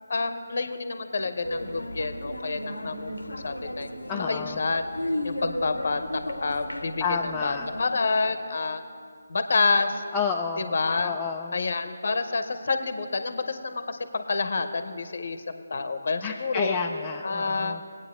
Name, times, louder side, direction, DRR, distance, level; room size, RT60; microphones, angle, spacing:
voice 1, 0.1-3.9 4.3-4.9 5.2-8.8 9.3-10.0 10.6-11.2 11.5-16.8 17.2-17.8, left 4 dB, 55° left, 10 dB, 0.7 m, -28 dB
sound 1, 1.4-7.8, left 1 dB, 90° left, 0.7 m, -34 dB
voice 2, 4.1-4.6 7.0-7.7 10.1-10.7 11.0-11.5 16.2-17.8, left 6 dB, 15° left, 0 dB, 0.3 m, -30 dB
21.0 x 8.8 x 2.5 m, 2.3 s
figure-of-eight pair, 150°, 0 cm